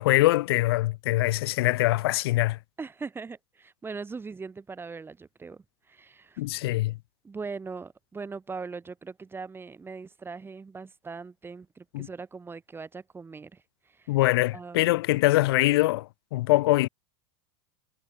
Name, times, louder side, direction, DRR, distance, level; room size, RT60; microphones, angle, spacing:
voice 1, 0.0-2.6 6.4-7.0 11.9-12.1 14.1-16.9, left 18 dB, 75° left, 1.6 m, -23 dB
voice 2, 2.8-6.4 7.2-14.2 14.5-15.0, right 4 dB, 15° right, 5.7 m, -40 dB
hypercardioid pair, 105°, 13 cm